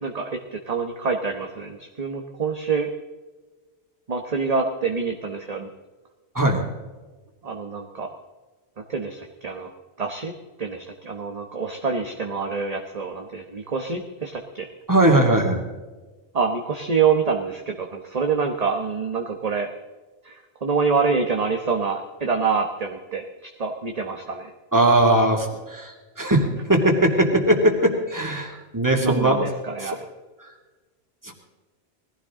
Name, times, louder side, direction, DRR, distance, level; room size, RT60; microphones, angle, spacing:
voice 1, 0.0-2.9 4.1-5.7 7.4-8.1 8.9-9.7 10.0-10.3 10.6-14.7 16.3-19.7 20.2-24.5 29.0-29.9, right 5 dB, 35° right, 2 dB, 1.2 m, -26 dB
voice 2, 14.9-15.6 24.7-29.4 29.8-29.9 30.4-30.5 31.2-31.3, right 1 dB, 15° right, 1 dB, 2.5 m, -20 dB
21.0 x 15.5 x 3.7 m, 1.3 s
omnidirectional pair, 1.1 m